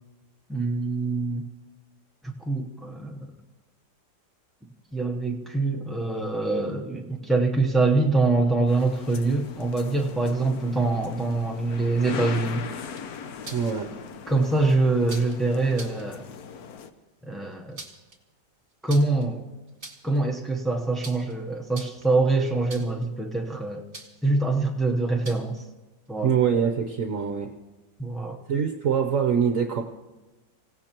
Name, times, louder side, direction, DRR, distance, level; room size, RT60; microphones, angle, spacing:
voice 1, 0.5-1.5 2.2-3.3 4.9-12.6 14.3-16.2 17.2-17.8 18.8-19.5 20.0-23.8 24.2-25.6 26.1-26.4 28.0-28.4, right 3 dB, ahead, -1 dB, 0.4 m, -24 dB
sound 1, 8.7-16.9, left 6 dB, 65° left, 1.2 m, -39 dB
sound 2, 12.8-13.7 15.1-15.4 15.7-16.0 17.5-18.2 18.9-19.3 19.7-20.2 21.0-21.3 21.7-22.1 22.7-23.0 23.9-24.3 25.2-25.6, right 3 dB, 30° right, 2.0 m, -42 dB
voice 2, 13.5-13.9 26.2-27.5 28.5-29.8, right 7 dB, 55° right, 5 dB, 1.1 m, -24 dB
26.0 x 16.5 x 3.0 m, 1.1 s
omnidirectional pair, 1.8 m